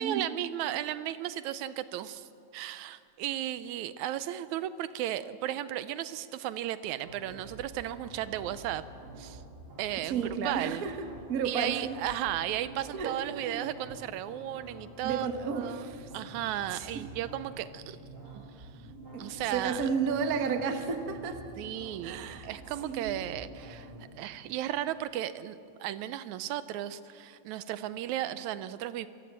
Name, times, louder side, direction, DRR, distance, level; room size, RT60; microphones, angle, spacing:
voice 1, 0.0-8.8 9.2-9.4 9.8-10.8 11.5-15.3 15.6-15.9 16.1-18.0 18.3-18.7 19.2-19.9 21.6-23.9 24.2-29.1, right 12 dB, 80° right, 2.0 m, -35 dB
sound 1, 7.0-24.0, right 1 dB, 25° right, 4.2 m, -48 dB
voice 2, 10.0-12.0 12.9-13.7 15.0-16.1 16.7-17.1 19.1-21.4 22.0-22.5 22.8-23.3, right 6 dB, 50° right, 1.1 m, -33 dB
25.5 x 15.5 x 7.4 m
omnidirectional pair, 3.4 m